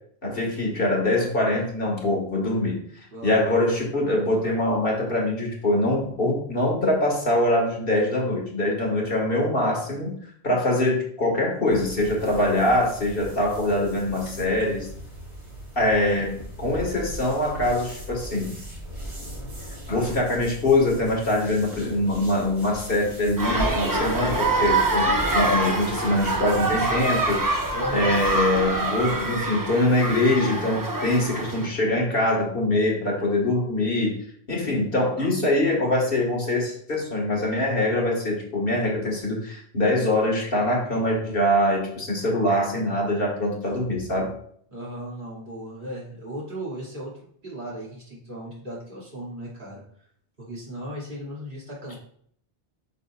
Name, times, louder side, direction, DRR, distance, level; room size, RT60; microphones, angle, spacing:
voice 1, 0.2-2.8 3.2-10.1 10.4-14.9 15.8-18.6 19.9-27.4 27.9-34.2 34.5-44.3, left 1 dB, 55° left, -2 dB, 2.0 m, -23 dB
voice 2, 3.1-3.5 27.7-28.2 44.7-49.8 50.4-52.0, equal, 50° right, -6 dB, 2.8 m, -36 dB
Wiping powder onto face, 11.7-29.5, right 1 dB, 80° right, 2.6 m, -39 dB
sound 1, 23.4-31.7, right 2 dB, 20° right, 0.7 m, -25 dB
8.1 x 6.4 x 2.4 m, 0.62 s
omnidirectional pair, 1.1 m